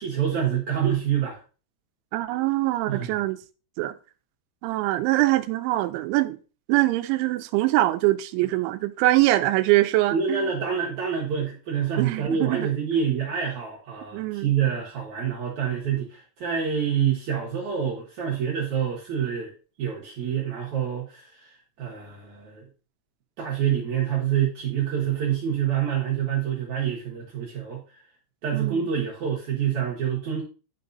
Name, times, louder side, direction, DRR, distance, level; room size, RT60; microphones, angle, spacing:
voice 1, 0.0-1.4 2.9-3.1 10.1-19.5 19.8-22.6 23.4-28.0 28.4-30.4, right 8 dB, 65° right, 2.0 m, -27 dB
voice 2, 2.1-3.4 3.8-4.0 4.6-6.4 6.7-10.5 12.0-12.7 14.1-14.5 28.5-28.8, right 17 dB, 90° right, 3.0 m, -23 dB
11.0 x 4.8 x 2.6 m
omnidirectional pair, 5.3 m